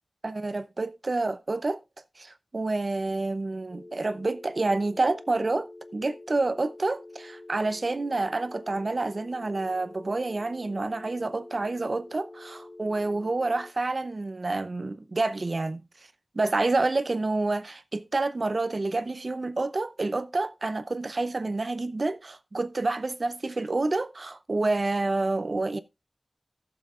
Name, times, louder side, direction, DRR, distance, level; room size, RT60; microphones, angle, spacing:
voice 1, 0.2-1.8 2.2-15.8 16.3-25.8, right 2 dB, 60° right, 0.7 m, -28 dB
sound 1, 3.7-13.7, left 2 dB, 40° left, 0.7 m, -47 dB
15.5 x 6.9 x 2.5 m
wide cardioid pair, 65°, 0 cm